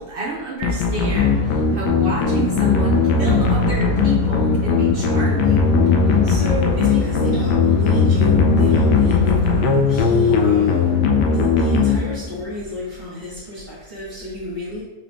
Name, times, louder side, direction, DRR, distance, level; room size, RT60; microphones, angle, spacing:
voice 1, 0.0-5.7, right 3 dB, 65° right, -3 dB, 0.5 m, -29 dB
sound 1, 0.6-12.5, left 5 dB, 85° left, 1.2 m, -19 dB
sound 2, 1.0-11.7, left 4 dB, 45° left, 1.0 m, -22 dB
voice 2, 6.0-14.8, equal, 35° right, -11 dB, 1.7 m, -30 dB
3.6 x 3.6 x 3.4 m, 0.96 s
omnidirectional pair, 1.8 m